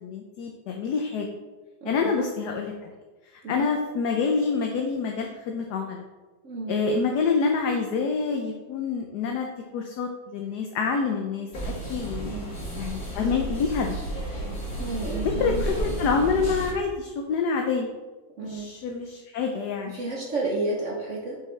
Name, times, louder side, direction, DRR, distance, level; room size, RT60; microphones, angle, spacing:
voice 1, 0.0-1.3 1.8-2.9 3.3-6.0 6.7-9.5 9.7-12.3 12.7-14.0 15.2-17.9 18.4-20.0, left 5 dB, 65° left, 3 dB, 1.1 m, -27 dB
voice 2, 1.8-2.1 3.4-3.7 6.4-6.8 12.3-12.5 14.8-16.0 18.4-18.7 19.9-21.4, right 2 dB, 55° right, -1 dB, 0.9 m, -31 dB
sound 1, 11.5-16.7, right 1 dB, 50° left, 2.5 m, -32 dB
7.5 x 5.8 x 3.2 m, 1.2 s
omnidirectional pair, 2.1 m